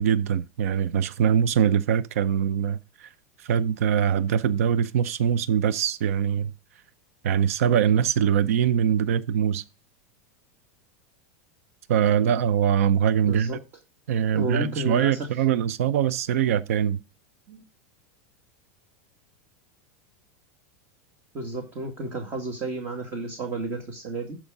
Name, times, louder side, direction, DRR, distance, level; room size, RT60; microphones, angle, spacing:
voice 1, 0.0-3.1 3.4-6.5 7.2-9.6 11.9-13.6 14.1-17.0, right 8 dB, 85° right, 0.6 m, -23 dB
voice 2, 13.2-13.6 14.3-15.3 17.5-17.6 21.3-24.4, right 2 dB, 30° right, 2.1 m, -32 dB
12.5 x 5.0 x 3.9 m
supercardioid pair, 155°, 8 cm